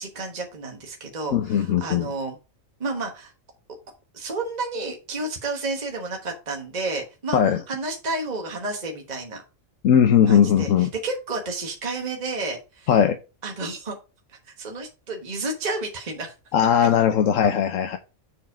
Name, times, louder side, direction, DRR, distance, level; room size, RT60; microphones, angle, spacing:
voice 1, 0.0-2.4 2.8-3.3 4.1-7.4 7.7-9.4 10.3-12.9 13.4-14.0 14.4-16.3, right 3 dB, 30° right, 1 dB, 1.4 m, -31 dB
voice 2, 1.3-2.1 7.3-7.6 9.8-10.9 12.9-13.2 16.5-18.0, left 8 dB, 70° left, 6 dB, 1.1 m, -19 dB
7.5 x 4.8 x 4.7 m, 0.30 s
omnidirectional pair, 1.4 m